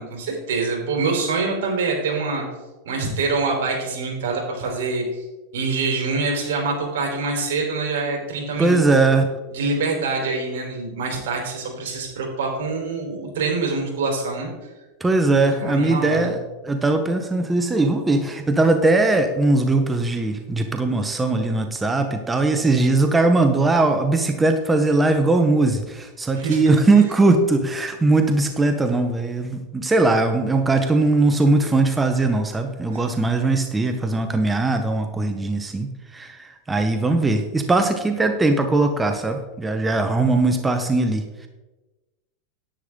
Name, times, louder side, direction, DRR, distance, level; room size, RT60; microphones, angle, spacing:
voice 1, 0.0-2.4 2.8-5.2 5.5-8.8 9.5-14.5 15.5-16.3 26.3-26.8 32.9-33.0, right 3 dB, 80° right, 0 dB, 4.0 m, -25 dB
voice 2, 8.6-9.3 15.0-16.4 16.6-41.5, right 2 dB, 15° right, 6 dB, 1.0 m, -20 dB
10.0 x 9.7 x 3.8 m, 1.1 s
supercardioid pair, 120°, 0 cm